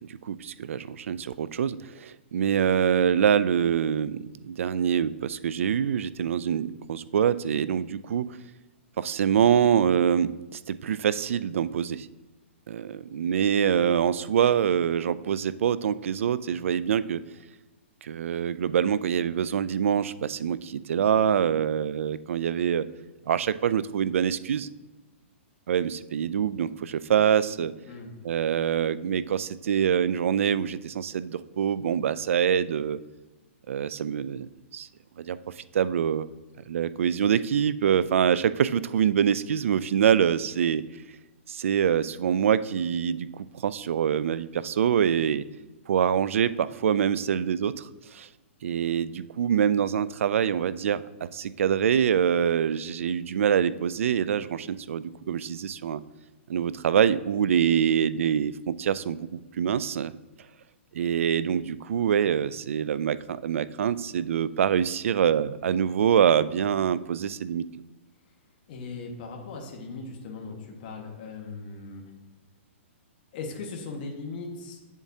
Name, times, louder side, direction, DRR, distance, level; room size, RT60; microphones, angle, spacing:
voice 1, 0.1-8.4 9.0-12.1 12.7-17.2 18.0-22.9 23.3-24.7 25.7-27.7 28.2-33.0 33.7-34.9 35.2-36.3 36.7-40.8 41.5-45.4 45.9-48.3 48.6-56.0 56.5-60.1 60.9-67.6, right 8 dB, 75° right, 16 dB, 0.3 m, -25 dB
voice 2, 68.7-72.0 73.3-74.8, left 4 dB, 40° left, 1 dB, 1.5 m, -38 dB
8.6 x 7.1 x 2.7 m, 1.2 s
hypercardioid pair, 160°, 7 cm